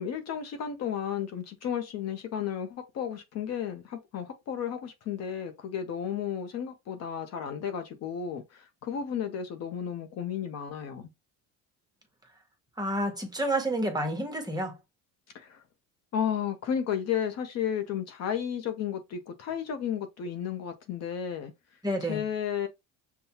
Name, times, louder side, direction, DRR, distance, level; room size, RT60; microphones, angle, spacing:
voice 1, 0.0-11.1 15.3-15.6 16.1-21.5 22.1-22.7, left 8 dB, 45° left, 0.7 m, -33 dB
voice 2, 12.8-14.7 21.8-22.2, right 1 dB, 10° right, 1.0 m, -29 dB
5.4 x 2.3 x 2.8 m
cardioid pair, 125°, 35 cm